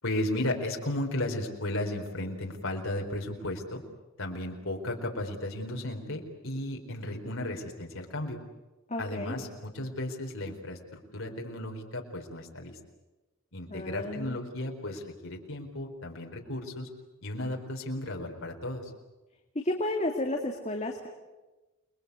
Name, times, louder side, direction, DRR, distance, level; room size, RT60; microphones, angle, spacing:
voice 1, 0.0-3.8 4.2-8.4 9.0-12.7 13.5-16.9 17.2-18.9, left 1 dB, 70° left, 2 dB, 4.4 m, -34 dB
voice 2, 8.9-9.4 13.7-14.4 19.6-21.1, left 1 dB, 35° left, 2 dB, 2.1 m, -32 dB
28.5 x 21.5 x 8.4 m, 1.1 s
head